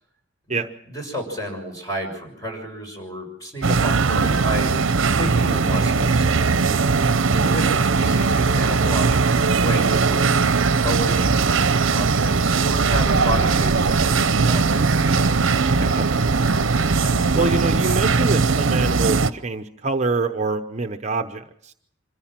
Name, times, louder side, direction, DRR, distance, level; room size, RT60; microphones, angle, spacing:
voice 1, 0.9-6.5 7.5-14.9, equal, 15° left, 1 dB, 6.2 m, -31 dB
sound 1, 3.6-19.3, right 4 dB, 70° right, 0.7 m, -19 dB
voice 2, 7.1-7.5 15.8-16.2 17.3-21.7, right 3 dB, 35° right, 7 dB, 0.8 m, -25 dB
sound 2, 12.9-18.1, equal, 50° left, 2.5 m, -33 dB
26.0 x 14.5 x 7.4 m, 0.71 s
head